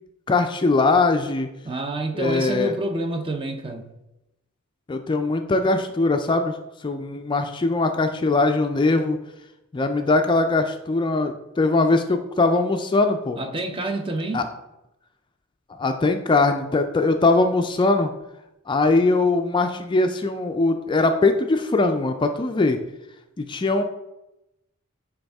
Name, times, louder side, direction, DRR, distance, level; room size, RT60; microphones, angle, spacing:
voice 1, 0.3-1.5 2.1-2.7 4.9-6.6 6.8-9.2 9.7-13.4 14.3-14.5 15.8-18.1 18.7-22.8 23.4-23.8, left 3 dB, 20° left, 0.4 m, -21 dB
voice 2, 1.6-3.9 13.4-14.4, right 2 dB, 25° right, 0.6 m, -28 dB
9.3 x 3.5 x 3.4 m
head